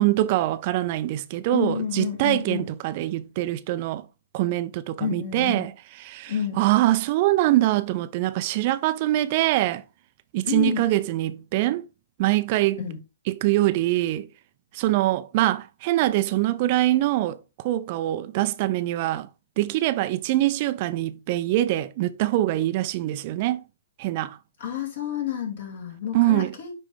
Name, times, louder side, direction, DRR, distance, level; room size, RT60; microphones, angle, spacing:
voice 1, 0.0-4.0 4.3-5.7 6.0-9.8 10.3-11.9 12.2-12.8 13.3-14.3 14.7-19.3 19.6-23.6 24.0-24.4 26.1-26.5, right 15 dB, 40° right, 0.4 m, -23 dB
voice 2, 1.5-2.7 5.0-5.7 6.3-6.6 10.4-10.9 12.8-13.0 24.6-26.7, left 9 dB, 55° left, 2.8 m, -30 dB
9.4 x 3.3 x 3.5 m
hypercardioid pair, 125°, 0 cm